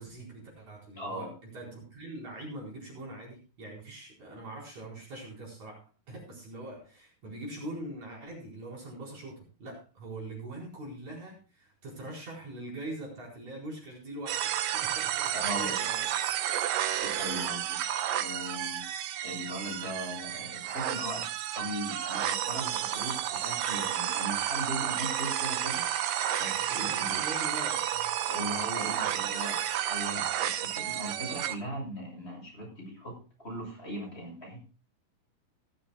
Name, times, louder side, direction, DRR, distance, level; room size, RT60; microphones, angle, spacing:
voice 1, 0.0-5.8 6.1-16.1 26.6-28.1, right 1 dB, 50° right, -2 dB, 5.6 m, -43 dB
voice 2, 1.0-1.3 15.3-15.8 17.0-17.8 18.2-18.8 19.2-21.2 21.5-25.8 26.4-27.2 28.3-29.6 29.9-34.6, equal, 15° left, -1 dB, 6.9 m, -38 dB
sound 1, 14.3-31.6, right 11 dB, 75° right, 2.5 m, -31 dB
17.5 x 13.5 x 2.3 m, 0.34 s
omnidirectional pair, 4.1 m